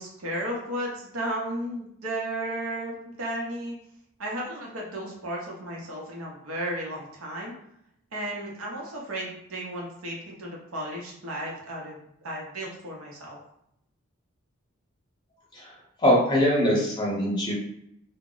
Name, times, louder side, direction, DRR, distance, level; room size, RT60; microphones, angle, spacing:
voice 1, 0.0-3.8 4.2-7.5 8.1-13.4, right 1 dB, 90° right, -3 dB, 0.8 m, -34 dB
voice 2, 16.0-17.5, equal, 20° left, -5 dB, 0.8 m, -22 dB
2.2 x 2.0 x 3.7 m, 0.76 s
head